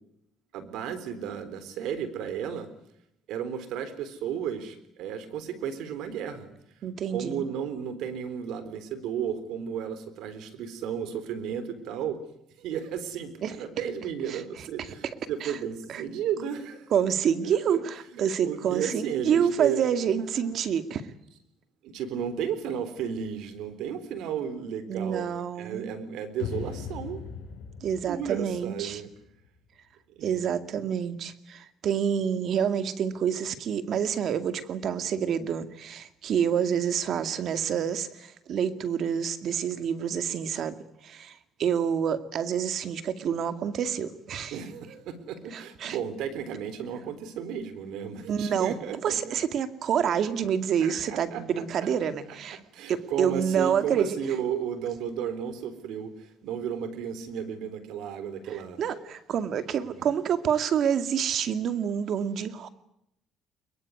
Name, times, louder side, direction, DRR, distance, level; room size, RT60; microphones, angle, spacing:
voice 1, 0.5-2.7 3.3-6.5 7.1-12.2 12.6-16.9 17.4-17.8 18.1-19.9 20.2-20.6 21.8-25.3 25.6-27.2 28.1-29.1 30.2-30.4 44.5-49.4 50.8-51.6 52.3-52.4 52.7-58.8 60.0-60.1, right 8 dB, 85° right, 3.7 m, -33 dB
voice 2, 6.8-7.5 13.4-13.5 14.3-14.4 14.8-14.9 15.4-15.5 15.9-16.0 16.9-17.8 18.2-21.1 24.9-25.9 27.8-29.0 30.2-40.8 41.0-41.3 41.6-44.6 45.5-46.0 48.3-48.8 49.0-52.6 52.9-54.2 58.8-62.7, right 8 dB, 60° right, 2.2 m, -28 dB
sound 1, 26.4-29.6, left 7 dB, 85° left, 4.4 m, -39 dB
23.5 x 22.0 x 9.7 m
cardioid pair, 100°, 0 cm